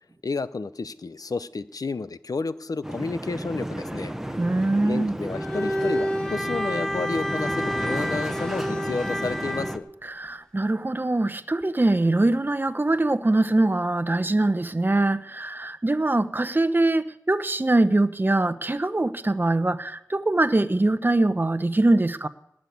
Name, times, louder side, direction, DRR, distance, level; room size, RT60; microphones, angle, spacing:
voice 1, 0.2-4.1 4.8-9.9, left 3 dB, 65° left, 0.7 m, -31 dB
sound 1, 2.8-9.8, right 1 dB, 5° right, 1.0 m, -33 dB
voice 2, 4.4-5.2 10.0-22.3, right 2 dB, 30° right, 0.8 m, -23 dB
Bowed string instrument, 5.3-9.8, equal, 10° left, 2.0 m, -29 dB
19.0 x 6.5 x 9.4 m
wide cardioid pair, 65°, 7 cm